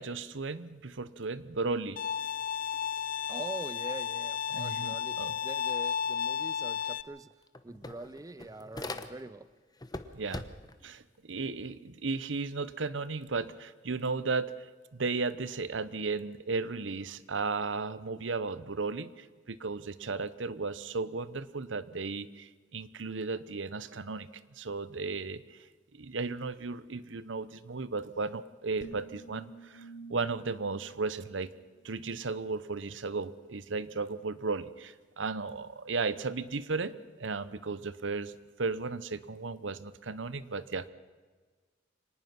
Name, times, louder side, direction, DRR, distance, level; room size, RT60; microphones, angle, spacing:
voice 1, 0.0-2.0 4.5-5.3 10.1-10.5 10.8-24.3 24.6-25.7 25.9-29.8 30.1-31.5 31.8-38.3 38.6-40.9, right 4 dB, 80° right, 16 dB, 0.9 m, -35 dB
Bowed string instrument, 2.0-7.0, left 8 dB, 50° left, 0.7 m, -33 dB
voice 2, 3.3-7.3 7.6-9.5, right 2 dB, 20° right, 16 dB, 0.5 m, -44 dB
sound 1, 6.8-6.9 7.2-9.5 9.8-10.8, left 2 dB, 20° left, 1.0 m, -42 dB
sound 2, 28.8-32.1, right 3 dB, 80° left, 1.2 m, -51 dB
25.0 x 19.0 x 5.9 m, 1.4 s
head